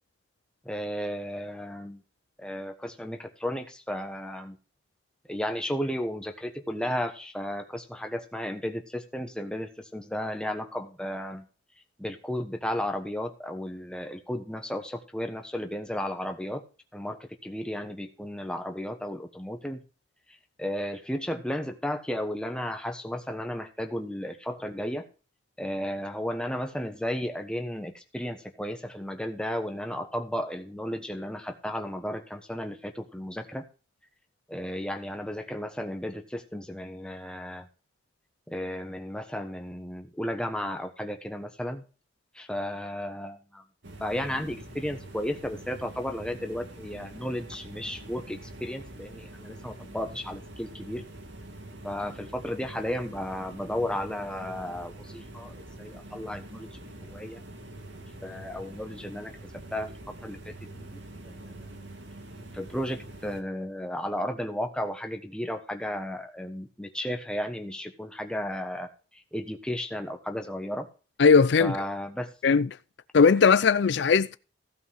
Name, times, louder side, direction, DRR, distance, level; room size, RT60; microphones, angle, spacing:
voice 1, 0.6-2.0 2.4-4.6 5.3-11.5 12.0-16.6 16.9-19.8 20.6-25.1 25.6-33.7 34.5-37.7 38.5-41.8 42.3-43.6 44.0-51.0 51.8-57.4 58.2-59.3 59.7-59.9 60.2-61.0 61.2-61.7 62.5-70.9 71.6-72.6, equal, 5° left, 1.2 m, -34 dB
sound 1, 43.8-63.4, right 1 dB, 70° right, 2.2 m, -45 dB
voice 2, 71.2-71.7 72.4-72.7 73.1-74.4, left 5 dB, 65° left, 0.4 m, -19 dB
15.5 x 5.5 x 5.7 m
head